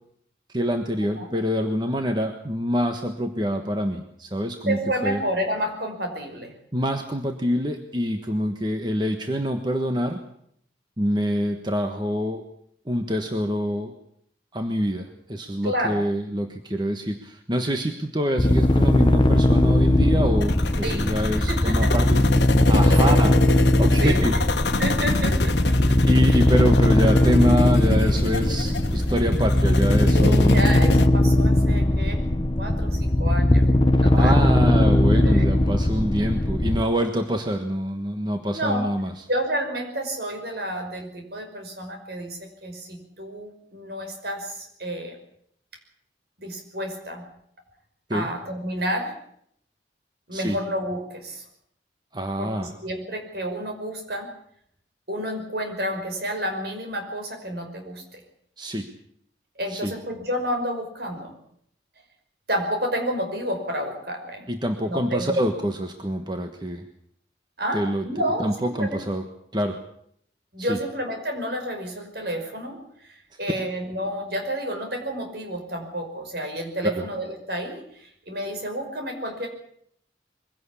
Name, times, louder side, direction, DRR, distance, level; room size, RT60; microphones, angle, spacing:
voice 1, 0.5-5.2 6.7-10.2 11.0-12.4 12.9-13.9 14.5-22.2 22.7-23.4 23.8-24.4 26.1-30.6 34.1-39.1 48.1-48.3 50.3-50.6 52.1-52.7 58.6-58.9 59.7-59.9 64.5-66.8 67.7-68.1 68.4-69.2 69.5-69.8 70.6-70.8 73.6-73.7 76.9-77.0, equal, 25° right, 5 dB, 1.4 m, -26 dB
voice 2, 4.7-6.5 15.6-16.0 20.8-21.1 21.5-21.9 23.0-23.3 24.0-24.4 24.8-26.0 26.3-26.4 30.1-33.7 34.0-34.4 35.2-35.4 38.5-38.9 39.3-45.2 46.4-47.2 48.1-49.1 50.3-51.4 52.4-54.3 55.1-58.2 59.6-61.4 62.5-64.5 64.9-65.4 67.6-69.0 70.5-79.5, equal, 60° right, 4 dB, 5.7 m, -30 dB
sound 1, 18.4-36.8, left 1 dB, 25° left, 0.8 m, -19 dB
sound 2, 20.4-31.1, left 2 dB, 70° left, 1.3 m, -28 dB
23.0 x 17.0 x 8.5 m, 0.69 s
head